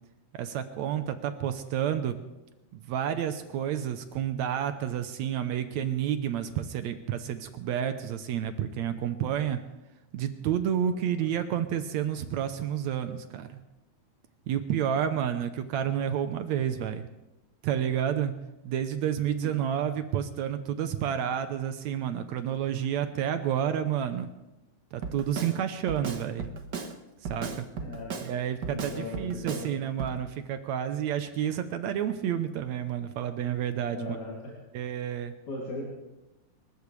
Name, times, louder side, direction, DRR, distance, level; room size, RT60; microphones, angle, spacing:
voice 1, 0.4-2.1 2.7-9.6 10.1-13.5 14.5-17.1 17.6-18.3 18.6-24.3 24.9-26.5 27.2-27.7 28.2-34.2 34.7-35.3, right 9 dB, 70° right, 9 dB, 2.0 m, -30 dB
Drum kit, 25.0-25.6 25.9-26.9 27.2-28.3 28.6-29.7 30.0-30.2, right 5 dB, 55° right, 1.2 m, -35 dB
voice 2, 27.8-28.2 28.7-29.7 33.9-34.4 35.5-35.9, left 2 dB, 65° left, -4 dB, 4.1 m, -38 dB
27.5 x 13.5 x 3.3 m, 0.99 s
omnidirectional pair, 3.6 m